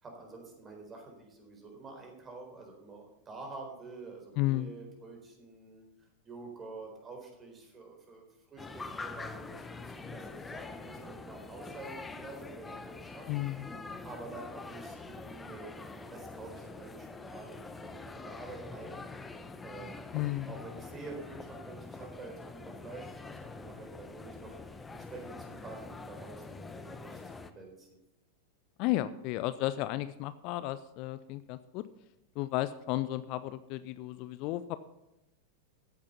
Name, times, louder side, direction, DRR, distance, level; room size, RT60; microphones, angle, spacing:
voice 1, 0.0-8.3 8.5-13.3 14.0-19.0 19.6-20.2 20.5-28.0, right 3 dB, 20° right, 2 dB, 4.2 m, -48 dB
voice 2, 4.4-4.7 13.3-13.7 20.1-20.5 28.8-31.8 32.4-34.8, left 16 dB, 40° left, 14 dB, 0.5 m, -33 dB
sound 1, 8.6-27.5, left 3 dB, 10° left, 1.0 m, -45 dB
14.0 x 8.6 x 5.6 m, 0.91 s
figure-of-eight pair, 90°, 0 cm